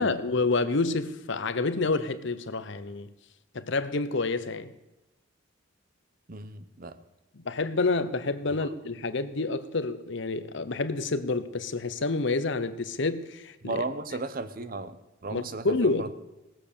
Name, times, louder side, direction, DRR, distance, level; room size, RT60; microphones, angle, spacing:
voice 1, 0.0-3.1 3.5-4.7 7.4-13.8 15.3-16.1, left 3 dB, 60° left, 0.8 m, -28 dB
voice 2, 6.3-7.0 8.6-8.7 13.6-16.1, right 3 dB, 45° right, 0.8 m, -35 dB
18.0 x 7.4 x 6.8 m
head